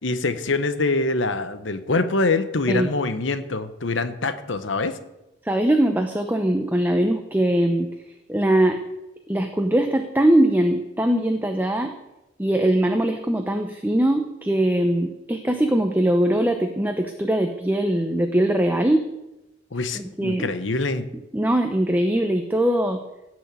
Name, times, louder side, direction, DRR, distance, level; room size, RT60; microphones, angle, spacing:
voice 1, 0.0-5.0 19.7-21.1, left 3 dB, 75° left, 10 dB, 1.1 m, -24 dB
voice 2, 5.4-7.9 8.3-8.8 9.3-11.9 12.4-19.1 19.9-20.5 21.3-23.0, right 1 dB, 10° right, 5 dB, 0.8 m, -21 dB
16.5 x 6.4 x 8.3 m, 0.97 s
head